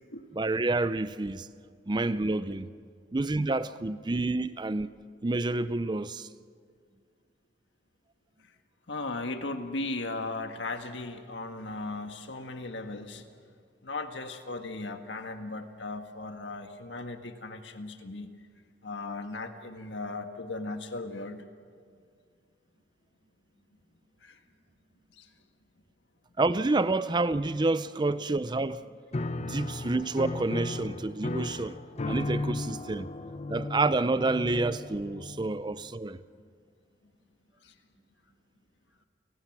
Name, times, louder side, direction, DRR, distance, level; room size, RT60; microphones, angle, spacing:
voice 1, 0.4-1.5 1.9-2.7 3.1-4.9 5.2-6.3 26.4-28.9 29.4-31.8 32.1-33.1 33.5-36.2, right 2 dB, 25° right, 0.5 m, -28 dB
voice 2, 8.9-13.2 13.8-18.3 18.8-21.4 24.2-24.4 25.1-25.3 37.6-37.7, left 2 dB, 90° left, 1.6 m, -37 dB
Piano, 29.1-35.9, left 2 dB, 35° left, 0.7 m, -35 dB
30.0 x 18.5 x 6.1 m
head